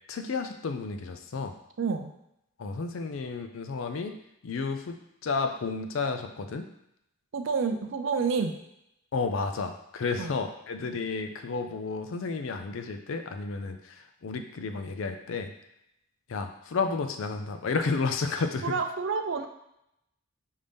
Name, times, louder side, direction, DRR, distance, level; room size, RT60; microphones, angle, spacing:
voice 1, 0.1-1.5 2.6-4.1 4.4-5.0 5.2-6.7 9.1-15.5 16.3-18.8, left 4 dB, 65° left, 7 dB, 0.4 m, -32 dB
voice 2, 1.8-2.1 7.3-8.5 10.2-10.3 18.6-19.5, right 5 dB, 60° right, 6 dB, 0.4 m, -28 dB
5.1 x 2.7 x 3.4 m, 0.81 s
head